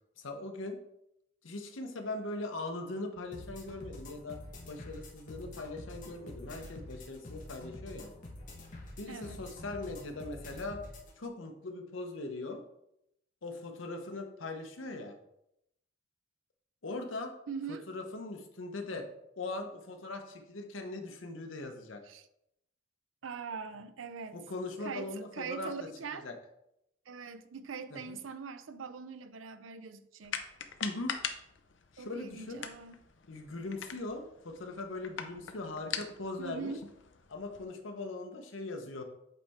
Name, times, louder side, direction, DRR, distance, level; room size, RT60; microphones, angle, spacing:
voice 1, 0.2-0.8 1.4-4.4 4.7-8.1 9.0-10.8 11.2-12.6 13.4-15.2 16.8-17.3 17.9-19.0 19.4-22.0 24.3-25.7 26.2-26.4 27.9-28.2 30.8-31.1 31.9-32.6 33.3-36.8 37.3-39.0, left 2 dB, 85° left, 0.9 m, -40 dB
sound 1, 3.3-11.1, left 1 dB, 40° left, 1.3 m, -47 dB
voice 2, 9.1-9.4 17.5-17.9 22.0-22.3 23.2-24.4 24.8-26.3 27.1-30.4 32.0-32.9 36.4-36.8, right 5 dB, 85° right, 0.5 m, -42 dB
sound 2, 30.2-37.6, left 7 dB, 65° left, 0.6 m, -43 dB
8.2 x 4.2 x 3.6 m
head